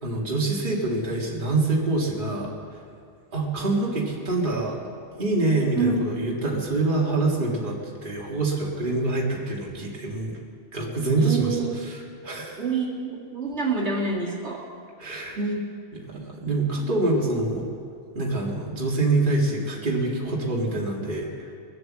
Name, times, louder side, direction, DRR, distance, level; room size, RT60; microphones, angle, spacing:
voice 1, 0.0-2.5 3.3-4.8 5.2-10.3 10.7-12.6 15.0-15.4 16.1-17.7 18.1-21.5, right 2 dB, 45° right, -3 dB, 2.1 m, -25 dB
voice 2, 11.2-11.7 12.6-14.6 15.4-15.6, right 4 dB, 70° right, -3 dB, 2.3 m, -27 dB
22.0 x 7.9 x 7.5 m, 2.3 s
omnidirectional pair, 1.2 m